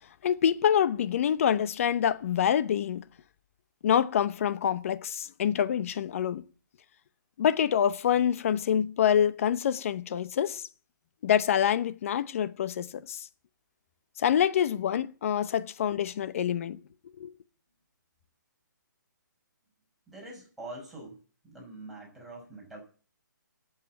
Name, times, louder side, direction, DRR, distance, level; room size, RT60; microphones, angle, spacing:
voice 1, 0.2-3.0 3.8-6.4 7.4-10.7 11.2-13.3 14.2-16.8 17.2-17.3, left 9 dB, 40° left, 0.8 m, -26 dB
voice 2, 20.1-21.2 21.4-22.8, right 2 dB, ahead, 6.2 m, -44 dB
11.0 x 7.5 x 8.8 m
hypercardioid pair, 155°, 11 cm